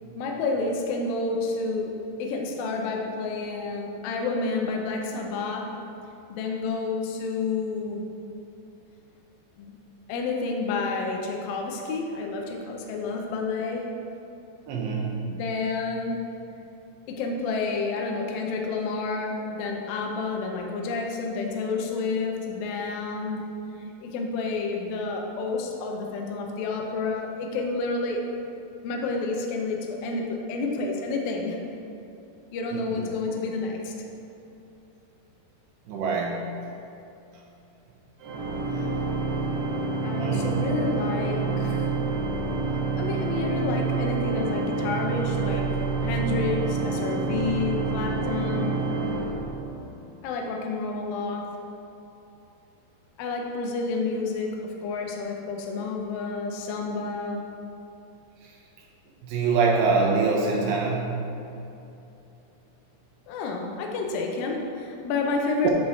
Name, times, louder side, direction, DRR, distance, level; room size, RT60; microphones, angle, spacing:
voice 1, 0.2-5.7 6.3-8.1 9.6-9.8 10.1-13.9 15.3-16.2 17.1-23.5 23.8-28.2 28.8-31.6 32.5-33.9 40.0-41.9 42.9-48.9 50.2-51.5 53.2-57.5 63.3-65.7, left 3 dB, 80° left, 1 dB, 2.1 m, -30 dB
voice 2, 14.7-15.4 32.7-33.1 35.9-36.6 40.2-40.7 58.4-58.5 59.2-61.3 65.6-65.7, right 4 dB, 85° right, -2 dB, 3.1 m, -25 dB
Organ, 38.2-50.0, right 4 dB, 65° right, 2.2 m, -27 dB
8.8 x 5.6 x 3.1 m, 2.8 s
omnidirectional pair, 4.9 m